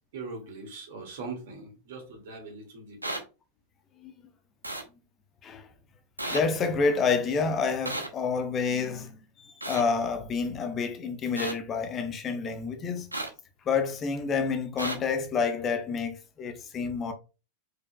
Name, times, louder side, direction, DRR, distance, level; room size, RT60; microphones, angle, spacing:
voice 1, 0.1-3.2, right 4 dB, 55° right, 2.1 m, -41 dB
sound 1, 3.0-3.2 4.6-4.8 6.2-6.4 7.9-8.1 9.6-9.8 11.4-11.5 13.1-13.3 14.8-15.0, right 1 dB, 85° right, 0.9 m, -32 dB
voice 2, 6.2-13.1 13.7-17.1, left 5 dB, 25° left, 0.8 m, -29 dB
4.8 x 4.7 x 2.2 m
figure-of-eight pair, 90°, 0 cm